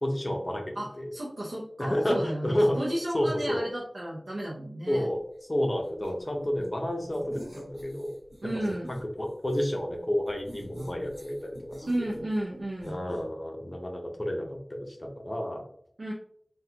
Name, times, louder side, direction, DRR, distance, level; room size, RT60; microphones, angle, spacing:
voice 1, 0.0-0.6 1.0-1.1 1.8-2.9 3.1-3.7 4.9-5.2 5.5-8.1 9.2-12.2 12.8-15.6, equal, 30° left, 1 dB, 0.7 m, -30 dB
voice 2, 0.8-5.1 8.4-8.9 11.9-13.0 16.0-16.1, right 1 dB, 85° right, -6 dB, 0.6 m, -33 dB
sound 1, 6.0-6.7 7.1-9.0 9.4-9.7 10.2-12.5 12.8-13.2, equal, 35° right, 1.3 m, -46 dB
3.6 x 2.3 x 2.8 m, 0.65 s
wide cardioid pair, 45°, 0 cm